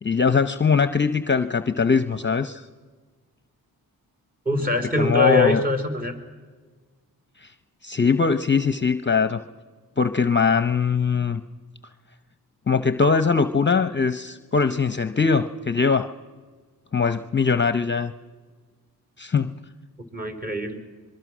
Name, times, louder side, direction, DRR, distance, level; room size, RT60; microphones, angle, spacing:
voice 1, 0.0-2.6 5.0-5.6 7.4-7.5 7.8-9.4 10.0-11.4 12.7-16.1 16.9-18.1 19.2-19.5, left 5 dB, 30° left, 10 dB, 0.7 m, -21 dB
voice 2, 4.5-6.1 20.1-20.8, left 2 dB, 25° right, 4 dB, 4.2 m, -23 dB
24.5 x 22.5 x 6.2 m, 1.4 s
cardioid pair, 60°, 37 cm